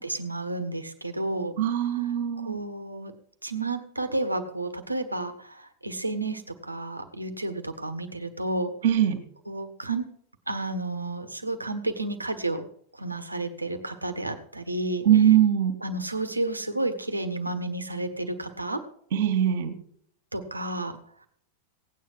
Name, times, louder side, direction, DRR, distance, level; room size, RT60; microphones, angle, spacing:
voice 1, 0.0-1.5 2.4-3.1 3.4-8.7 9.5-10.0 10.5-12.7 12.9-15.1 15.8-18.8 20.3-21.0, right 2 dB, 85° right, 8 dB, 1.4 m, -31 dB
voice 2, 1.6-2.6 8.8-9.2 15.1-15.7 19.1-19.8, right 10 dB, 55° right, 7 dB, 2.1 m, -21 dB
17.0 x 9.3 x 4.7 m, 0.64 s
figure-of-eight pair, 90°, 0 cm